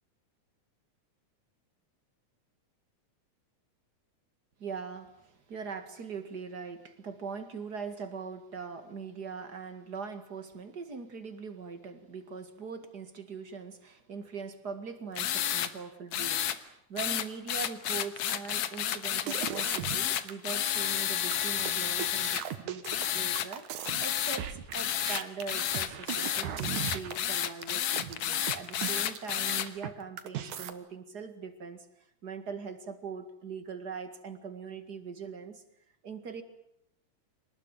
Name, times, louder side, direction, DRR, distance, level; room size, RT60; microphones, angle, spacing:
voice 1, 4.6-22.8 23.1-31.9 32.2-35.6 36.0-36.4, right 5 dB, 35° right, 8 dB, 2.2 m, -41 dB
sound 1, 15.2-15.7 16.1-16.6 17.0-22.4 22.8-23.5 23.8-24.4 24.7-29.7, left 10 dB, 65° left, 2.4 m, -31 dB
sound 2, 19.2-20.3 20.6-20.7 21.0-29.9 30.2-30.7, right 10 dB, 75° right, 2.9 m, -38 dB
26.0 x 19.5 x 9.2 m, 0.77 s
omnidirectional pair, 3.5 m